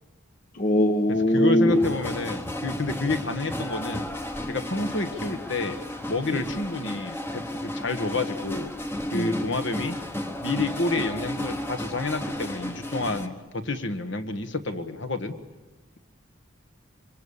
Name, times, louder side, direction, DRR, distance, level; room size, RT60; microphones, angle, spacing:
voice 1, 0.5-1.8 6.3-6.4 9.1-9.3, left 1 dB, 40° left, 7 dB, 1.0 m, -21 dB
voice 2, 1.1-4.1 4.5-5.8 6.1-8.7 9.1-10.0 10.4-15.4, left 3 dB, 60° left, 8 dB, 1.5 m, -29 dB
sound 1, 1.7-13.3, left 1 dB, 10° left, 1.0 m, -33 dB
25.5 x 24.0 x 7.2 m, 1.2 s
head